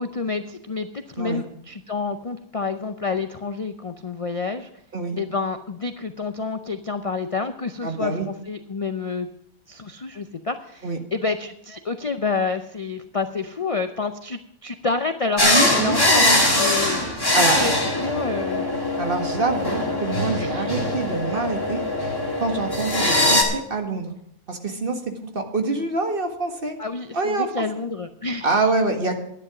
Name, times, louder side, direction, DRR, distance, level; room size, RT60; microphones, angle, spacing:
voice 1, 0.0-4.7 5.2-9.3 9.7-16.2 16.5-17.0 17.5-17.7 18.0-18.6 20.4-20.8 26.8-28.5, left 4 dB, 55° left, 8 dB, 0.3 m, -28 dB
voice 2, 7.8-8.3 10.8-11.0 15.4-16.4 17.3-17.6 19.0-21.8 22.4-24.1 24.5-25.0 25.3-26.8 27.1-27.7 28.4-29.1, right 3 dB, 40° right, 4 dB, 1.7 m, -25 dB
sound 1, 15.4-23.4, left 1 dB, 15° left, 2.2 m, -21 dB
11.5 x 10.0 x 6.1 m, 0.74 s
omnidirectional pair, 1.6 m